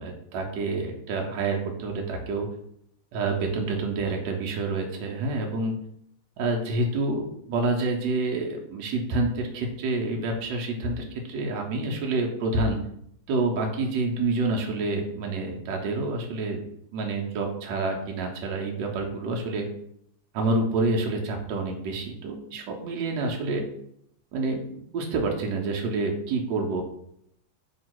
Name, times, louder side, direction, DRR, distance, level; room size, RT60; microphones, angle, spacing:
voice 1, 0.0-2.5 3.1-5.8 6.4-12.8 13.3-16.6 16.9-19.7 20.3-23.6 24.3-26.8, right 3 dB, 75° right, 1 dB, 1.2 m, -28 dB
2.9 x 2.7 x 4.4 m, 0.73 s
omnidirectional pair, 2.1 m